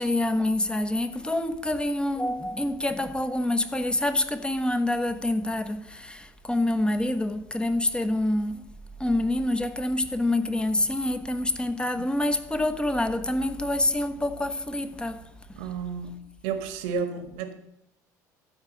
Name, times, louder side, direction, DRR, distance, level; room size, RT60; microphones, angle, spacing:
voice 1, 0.0-8.6 9.0-15.2, left 1 dB, 10° left, 1.1 m, -26 dB
voice 2, 15.6-16.1 16.4-17.5, right 6 dB, 70° right, 1.5 m, -31 dB
13.5 x 4.6 x 7.8 m
hypercardioid pair, 65°, 9 cm